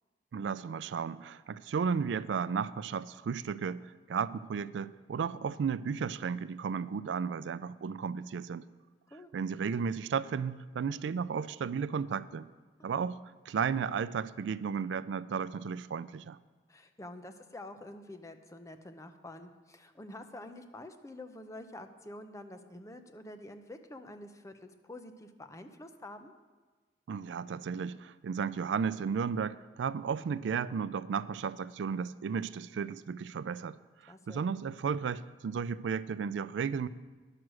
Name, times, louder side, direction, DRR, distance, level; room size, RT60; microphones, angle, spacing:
voice 1, 0.3-3.8 4.1-8.6 9.3-12.5 12.8-13.2 13.5-16.4 27.1-33.8 34.0-36.9, right 6 dB, 85° right, 17 dB, 0.3 m, -34 dB
voice 2, 16.7-26.3 34.1-34.5, left 1 dB, 20° left, 8 dB, 0.6 m, -48 dB
10.5 x 6.4 x 6.2 m, 1.4 s
head